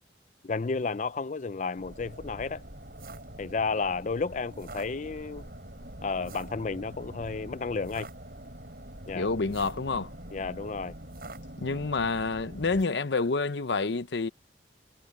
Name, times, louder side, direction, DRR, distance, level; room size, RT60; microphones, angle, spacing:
voice 1, 0.4-2.6 3.4-5.5 6.0-8.1 9.1-9.3 10.3-10.9, left 4 dB, 40° left, 0.5 m, -32 dB
sound 1, 1.8-12.8, right 1 dB, 55° right, 7.2 m, -44 dB
voice 2, 9.1-10.1 11.6-14.3, left 3 dB, 75° left, 0.8 m, -28 dB
head